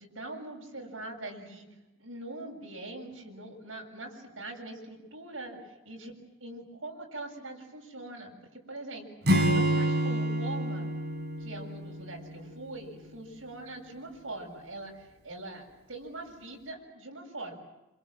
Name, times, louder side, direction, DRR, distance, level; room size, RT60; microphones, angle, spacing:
voice 1, 0.0-1.7 2.0-6.2 6.4-9.1 9.5-10.9 11.4-17.6, right 2 dB, 80° right, 0 dB, 7.3 m, -42 dB
Acoustic guitar / Strum, 9.2-12.7, equal, 55° right, 4.8 m, -28 dB
27.5 x 27.0 x 7.5 m, 0.96 s
head